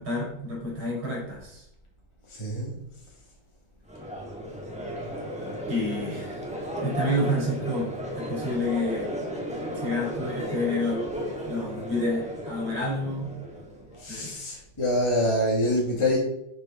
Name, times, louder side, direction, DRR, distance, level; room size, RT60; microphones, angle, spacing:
voice 1, 0.0-1.6 5.7-6.4 6.8-9.1 9.8-11.0 11.5-13.4 14.1-14.3, left 1 dB, 75° right, -4 dB, 4.6 m, -29 dB
voice 2, 2.3-2.7 14.0-16.2, left 1 dB, 15° left, -3 dB, 1.3 m, -25 dB
Crowd, 3.9-14.0, equal, 5° right, 1.2 m, -34 dB
11.0 x 5.0 x 4.2 m, 0.81 s
omnidirectional pair, 2.3 m